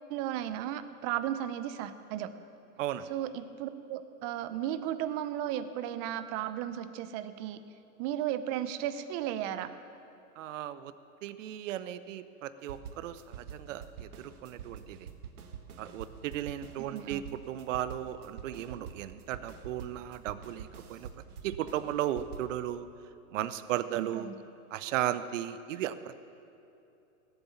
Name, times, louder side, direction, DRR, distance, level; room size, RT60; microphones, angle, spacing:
voice 1, 0.1-2.3 3.1-7.6 8.0-9.7 16.9-17.2 23.9-24.4, right 11 dB, 30° right, 12 dB, 0.6 m, -35 dB
voice 2, 10.4-10.9 11.2-15.1 15.8-21.1 21.4-22.9 23.3-24.3 24.7-26.3, right 12 dB, 55° right, 13 dB, 0.8 m, -36 dB
sound 1, 12.7-22.5, right 7 dB, 80° right, 1.4 m, -46 dB
17.0 x 8.0 x 7.3 m, 2.8 s
hypercardioid pair, 130°, 44 cm